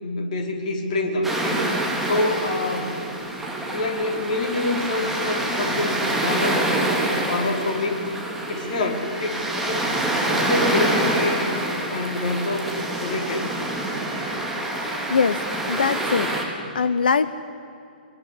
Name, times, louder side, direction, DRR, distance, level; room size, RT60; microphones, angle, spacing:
voice 1, 0.0-3.0 3.7-6.7 7.0-8.0 8.5-10.0 10.3-12.7 13.0-13.5, left 2 dB, 45° left, 3 dB, 4.3 m, -26 dB
sound 1, 1.2-16.4, right 1 dB, 5° right, 4.0 m, -26 dB
sound 2, 8.5-14.4, left 2 dB, 50° right, 7.9 m, -47 dB
voice 2, 15.1-15.4 15.7-16.4 16.7-17.3, left 5 dB, 65° left, 14 dB, 0.9 m, -21 dB
23.0 x 23.0 x 9.9 m, 2.5 s
figure-of-eight pair, 120°, 5 cm